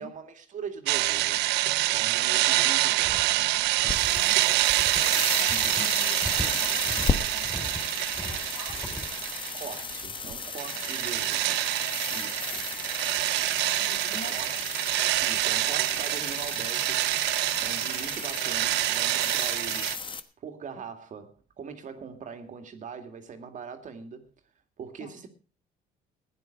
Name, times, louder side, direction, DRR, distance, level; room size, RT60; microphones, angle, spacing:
voice 1, 0.0-1.6 1.9-3.6 5.5-5.9 9.5-11.8 12.1-12.6 14.1-14.7 15.2-17.1 17.6-19.9 20.4-24.3 24.8-25.3, right 6 dB, 50° right, 2.3 m, -42 dB
sound 1, 0.9-10.0 10.2-20.0, right 18 dB, 90° right, 0.6 m, -27 dB
sound 2, 3.0-3.4 3.8-4.2 4.7-5.2 5.5-5.8 6.2-7.1 7.4-9.2, left 1 dB, 5° left, 5.0 m, -38 dB
sound 3, 3.8-20.2, left 5 dB, 30° left, 1.2 m, -35 dB
voice 2, 4.1-4.9 5.4-9.4 10.7-10.9 12.4-13.0 13.6-14.5 18.2-18.3 25.0-25.2, left 4 dB, 85° left, 7.5 m, -48 dB
15.0 x 10.5 x 5.3 m
cardioid pair, 110°, 17 cm